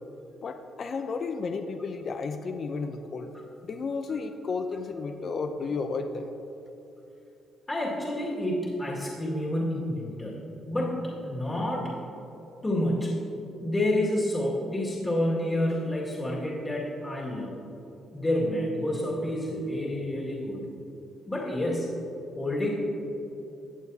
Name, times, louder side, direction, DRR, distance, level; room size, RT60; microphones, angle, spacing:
voice 1, 0.4-3.3 3.6-6.3, left 4 dB, 50° left, 7 dB, 0.5 m, -32 dB
voice 2, 7.7-10.4 10.7-12.0 12.6-13.3 13.6-17.6 18.1-20.7 21.3-21.9 22.3-22.7, left 1 dB, 20° left, -5 dB, 2.0 m, -29 dB
15.0 x 8.3 x 2.8 m, 2.9 s
cardioid pair, 90°, 0 cm